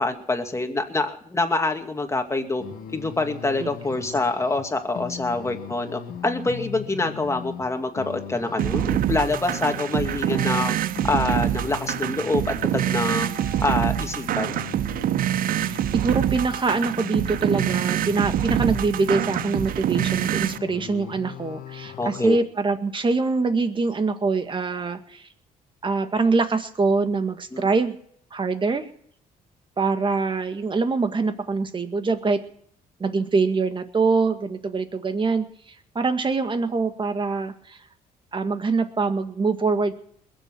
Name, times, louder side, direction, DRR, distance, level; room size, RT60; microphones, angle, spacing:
voice 1, 0.0-2.6 2.9-10.8 11.0-13.3 13.6-14.6 22.0-22.4 27.5-27.6, left 2 dB, 20° left, 5 dB, 2.4 m, -26 dB
sound 1, 2.6-22.4, left 8 dB, 70° left, 2.0 m, -39 dB
sound 2, 8.6-20.6, right 12 dB, 65° right, 0.6 m, -25 dB
voice 2, 15.6-25.3 25.8-27.9 28.3-28.9 29.8-32.4 33.0-37.8 38.3-40.0, right 4 dB, 30° right, 8 dB, 1.9 m, -24 dB
21.0 x 7.7 x 7.6 m, 0.64 s
cardioid pair, 85°, 16 cm